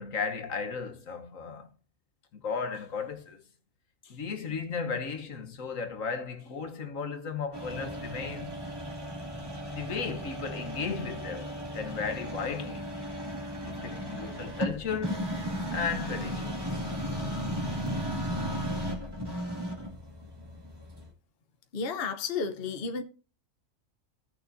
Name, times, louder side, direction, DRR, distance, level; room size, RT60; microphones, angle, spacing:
voice 1, 0.0-1.7 2.3-3.4 4.0-8.5 9.7-12.9 13.6-15.3 15.7-16.6, left 5 dB, 70° left, 1.5 m, -35 dB
sound 1, 7.5-21.1, equal, 15° right, 2.4 m, -35 dB
voice 2, 21.7-23.0, left 5 dB, 45° left, 1.1 m, -32 dB
16.5 x 6.4 x 2.7 m
omnidirectional pair, 1.5 m